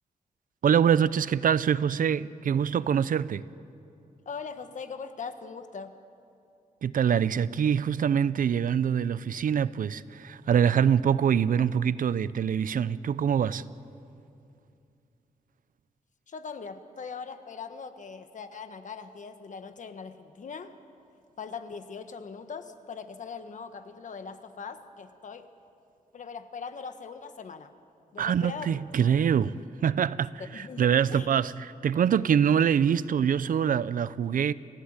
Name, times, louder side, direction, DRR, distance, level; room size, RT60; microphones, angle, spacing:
voice 1, 0.6-3.4 6.8-13.6 28.2-34.5, right 8 dB, 75° right, 0.6 m, -25 dB
voice 2, 4.2-5.9 16.3-20.7 21.4-25.5 26.1-27.7 28.1-29.3 30.5-31.3, left 5 dB, 60° left, 1.4 m, -41 dB
29.0 x 16.5 x 9.0 m
wide cardioid pair, 130°, 14 cm